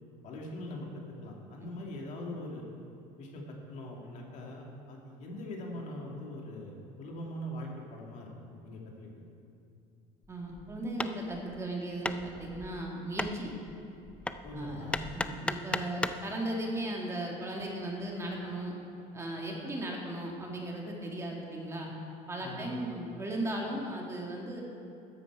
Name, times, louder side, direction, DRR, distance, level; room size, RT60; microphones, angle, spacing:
voice 1, 0.2-0.9 1.2-2.6 3.2-8.3 8.6-9.2 14.4-15.0 22.4-22.7, left 1 dB, 50° left, -1 dB, 2.4 m, -42 dB
Hammer, 10.2-16.3, left 2 dB, 5° left, 0.4 m, -37 dB
voice 2, 10.3-13.5 14.5-18.7 19.1-21.9 22.3-24.6, right 1 dB, 20° right, -1 dB, 2.0 m, -37 dB
13.5 x 9.8 x 4.8 m, 2.7 s
cardioid pair, 120°, 15 cm